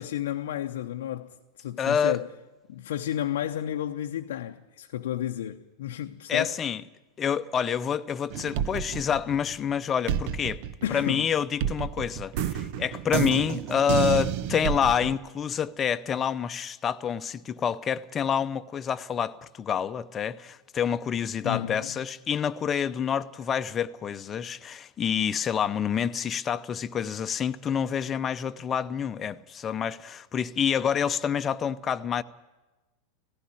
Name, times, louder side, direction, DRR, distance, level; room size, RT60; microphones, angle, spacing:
voice 1, 0.0-2.3 2.7-6.5 10.8-11.3 21.4-22.0, left 11 dB, 70° left, 0.7 m, -32 dB
voice 2, 1.8-2.2 6.3-6.8 7.2-10.6 10.9-32.2, left 8 dB, 30° left, 0.7 m, -28 dB
sound 1, 8.3-9.7 10.1-15.2, right 10 dB, 55° right, 0.9 m, -30 dB
17.0 x 15.5 x 10.0 m
hypercardioid pair, 90°, 0 cm